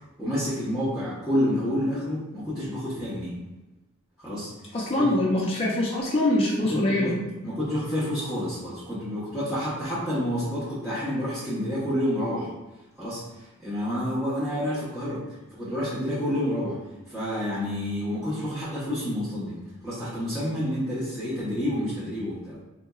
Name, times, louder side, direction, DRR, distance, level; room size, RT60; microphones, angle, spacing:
voice 1, 0.0-3.4 4.2-5.1 6.7-7.2 7.4-12.5 13.0-22.6, equal, ahead, -12 dB, 0.8 m, -29 dB
voice 2, 4.7-7.1, left 1 dB, 25° left, -4 dB, 0.5 m, -24 dB
4.2 x 2.7 x 2.3 m, 1.1 s
head